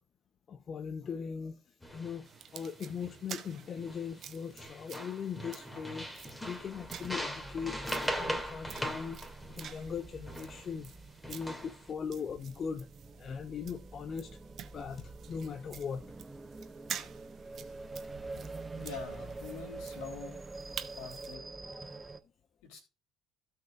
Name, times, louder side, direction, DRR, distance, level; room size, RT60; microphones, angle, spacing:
voice 1, 0.5-9.2 9.5-10.9 11.3-12.9 13.2-14.4 14.7-16.1 18.5-18.7 21.6-22.0, left 6 dB, 35° left, 0.7 m, -40 dB
sound 1, 1.8-2.2 2.6-3.2 3.8-4.3 4.6-10.7 11.2-11.9, equal, 10° left, 2.2 m, -40 dB
sound 2, 2.2-21.4, right 9 dB, 45° right, 0.9 m, -49 dB
sound 3, 5.3-22.2, right 3 dB, 15° right, 0.7 m, -47 dB
voice 2, 18.7-20.4 20.9-21.4 22.7-22.8, left 6 dB, 60° left, 3.1 m, -44 dB
16.0 x 6.3 x 2.4 m
figure-of-eight pair, 60°, 0 cm